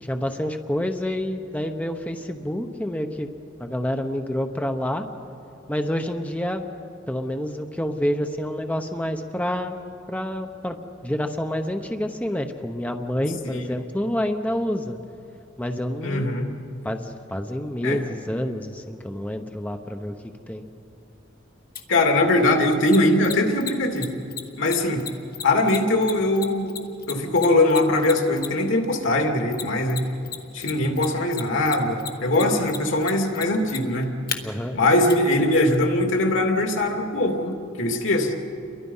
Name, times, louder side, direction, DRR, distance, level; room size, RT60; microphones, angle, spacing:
voice 1, 0.0-3.3 3.6-5.1 5.7-6.7 7.1-9.8 10.1-10.8 11.0-15.0 15.6-16.3 16.8-20.2 20.5-20.6 34.4-34.8, equal, 10° left, 5 dB, 0.9 m, -28 dB
voice 2, 16.0-16.5 17.8-18.0 21.9-24.1 24.6-25.0 25.4-26.8 27.1-30.0 30.5-34.1 34.7-38.3, left 1 dB, 80° left, 3 dB, 2.6 m, -21 dB
Mechanisms, 21.7-21.8 22.9-28.7 29.5-30.4 30.6-34.4 35.1-35.2, left 9 dB, 50° left, 1.7 m, -33 dB
29.5 x 23.0 x 5.6 m, 2.7 s
head